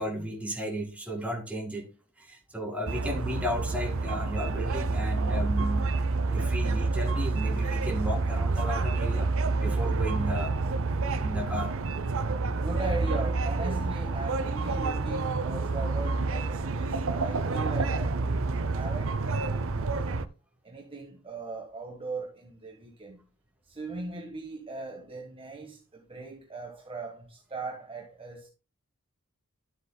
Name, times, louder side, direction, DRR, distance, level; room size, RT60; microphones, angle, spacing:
voice 1, 0.0-1.9 2.2-9.3 9.6-10.7 11.2-12.0, equal, 5° right, 2.3 m, -34 dB
sound 1, 2.9-20.3, right 3 dB, 65° right, 0.6 m, -28 dB
voice 2, 12.4-20.1 20.6-23.2 23.6-28.5, right 3 dB, 25° right, 1.4 m, -39 dB
13.0 x 7.8 x 2.3 m
head